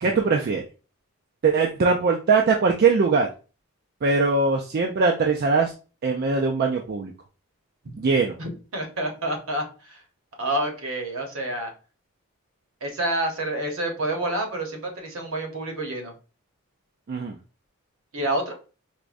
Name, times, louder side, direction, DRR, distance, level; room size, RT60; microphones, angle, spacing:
voice 1, 0.0-0.6 1.4-3.3 4.0-5.7 6.0-7.1 8.0-8.3 17.1-17.4, right 4 dB, 45° right, 2 dB, 0.3 m, -21 dB
voice 2, 8.4-10.0 10.4-11.7 12.8-16.1 18.1-18.6, right 1 dB, 65° right, 2 dB, 0.9 m, -28 dB
4.7 x 2.1 x 2.5 m, 0.34 s
head